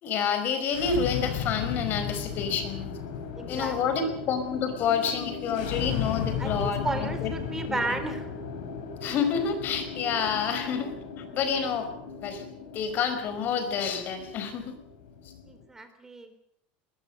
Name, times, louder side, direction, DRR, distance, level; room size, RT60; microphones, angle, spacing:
voice 1, 0.0-2.9 3.5-7.3 7.7-8.0 9.0-10.9 11.3-11.9 12.2-12.4 12.7-14.7, left 6 dB, 40° left, 8 dB, 5.1 m, -28 dB
sound 1, 0.6-15.6, left 7 dB, 85° left, 6.9 m, -36 dB
voice 2, 3.3-4.1 6.4-8.3 10.5-10.7 15.4-16.4, right 2 dB, 10° right, 8 dB, 3.9 m, -34 dB
21.5 x 20.5 x 6.7 m, 0.72 s
supercardioid pair, 145°, 5 cm